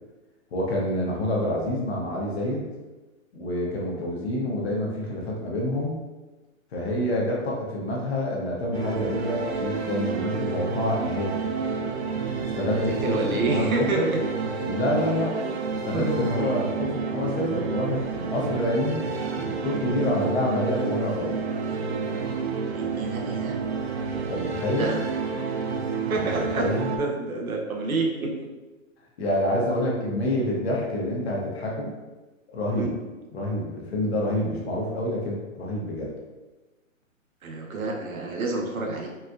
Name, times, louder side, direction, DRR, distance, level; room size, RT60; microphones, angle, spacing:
voice 1, 0.5-2.6 3.3-6.0 6.7-11.4 12.4-14.1 14.6-15.4 15.7-19.0 19.3-21.4 24.3-24.9 26.2-26.9 29.2-31.9 32.5-32.9 33.3-36.1, left 1 dB, 50° left, -3 dB, 0.9 m, -27 dB
sound 1, 8.7-27.0, right 4 dB, 55° right, 0.5 m, -30 dB
voice 2, 12.9-14.2 15.9-16.1 16.4-16.5 19.7-19.9 22.7-23.6 24.7-25.0 26.1-28.5 32.8-33.0 37.4-39.1, right 3 dB, 85° right, 1 dB, 0.8 m, -28 dB
4.1 x 2.2 x 2.5 m, 1.2 s
hypercardioid pair, 155°, 41 cm